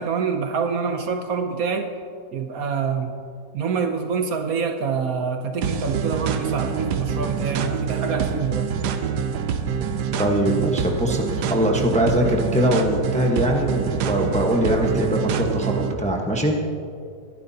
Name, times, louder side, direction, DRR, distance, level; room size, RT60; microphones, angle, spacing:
voice 1, 0.0-1.9 2.3-3.1 3.5-8.7, right 5 dB, 65° right, 6 dB, 1.1 m, -26 dB
sound 1, 5.6-15.9, right 7 dB, 85° right, 1.3 m, -26 dB
voice 2, 10.2-16.6, equal, 5° left, 1 dB, 0.9 m, -22 dB
22.0 x 11.5 x 2.8 m, 2.5 s
omnidirectional pair, 1.8 m